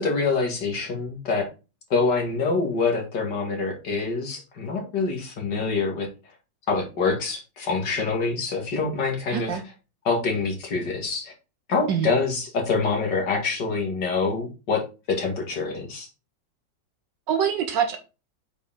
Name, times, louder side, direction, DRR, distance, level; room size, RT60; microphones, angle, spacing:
voice 1, 0.0-1.5 1.9-6.1 6.7-9.6 10.0-11.3 11.7-14.8 15.1-16.1, left 4 dB, 70° left, 2.6 m, -25 dB
voice 2, 9.3-9.6 11.9-12.1 17.3-18.0, right 8 dB, 75° right, 1.6 m, -24 dB
8.1 x 4.7 x 3.7 m
omnidirectional pair, 2.0 m